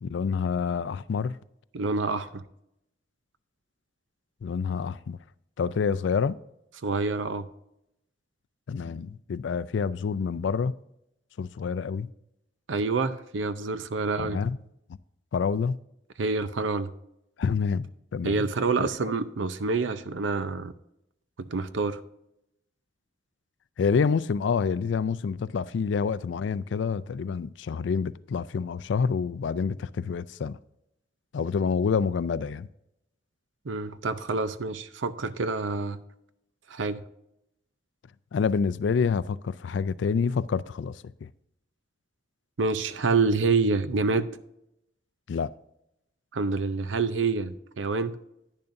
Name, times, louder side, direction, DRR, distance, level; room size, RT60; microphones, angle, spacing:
voice 1, 0.0-1.4 4.4-5.2 5.6-6.4 8.7-10.7 11.4-12.1 14.2-14.6 15.3-15.8 17.4-17.9 18.1-18.5 18.8-18.9 23.8-30.6 31.3-32.7 38.3-41.3 45.3-45.5, left 5 dB, 75° left, 0.4 m, -27 dB
voice 2, 1.7-2.4 6.8-7.5 12.7-14.4 16.2-16.9 18.2-20.7 21.5-22.0 33.7-36.0 36.7-37.0 42.6-44.3 46.3-48.2, right 4 dB, 90° right, 0.6 m, -27 dB
10.5 x 9.9 x 2.6 m
head